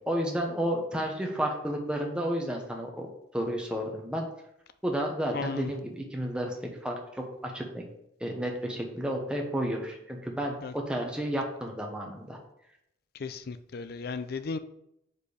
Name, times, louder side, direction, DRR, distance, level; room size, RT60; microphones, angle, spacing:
voice 1, 0.1-3.1 3.3-4.3 4.8-6.6 6.8-7.8 8.2-12.4, equal, 5° right, 1 dB, 0.9 m, -31 dB
voice 2, 5.3-5.7 10.6-10.7 13.1-14.6, left 4 dB, 50° left, 12 dB, 0.4 m, -35 dB
5.1 x 4.3 x 5.0 m, 0.79 s
head